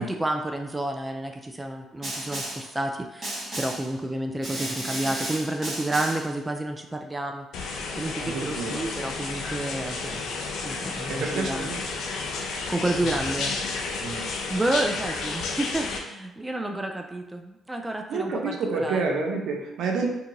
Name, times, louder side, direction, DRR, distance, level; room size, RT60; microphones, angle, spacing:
voice 1, 0.0-10.3 10.6-11.7 12.4-13.6 14.5-19.1, right 1 dB, 15° right, 4 dB, 0.3 m, -30 dB
Snare drum, 2.0-2.7 3.2-3.9 4.4-6.3, right 1 dB, 40° right, 1.4 m, -33 dB
sound 1, 7.5-16.0, left 4 dB, 75° left, 0.5 m, -32 dB
voice 2, 8.2-8.8 11.1-11.8 14.0-14.3 18.1-20.1, right 4 dB, 70° right, 1 dB, 0.6 m, -29 dB
2.7 x 2.5 x 3.9 m, 0.94 s
cardioid pair, 80°, 0 cm